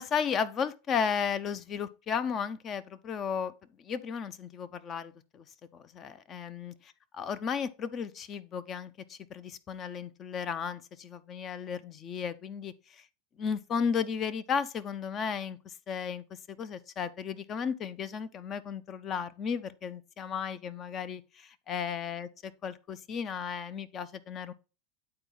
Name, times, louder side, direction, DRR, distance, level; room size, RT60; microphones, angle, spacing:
voice 1, 0.0-3.5 3.8-5.5 5.7-13.1 13.4-22.3 22.6-24.5, left 6 dB, 35° left, 0.6 m, -34 dB
8.8 x 4.2 x 3.8 m
supercardioid pair, 120°, 0 cm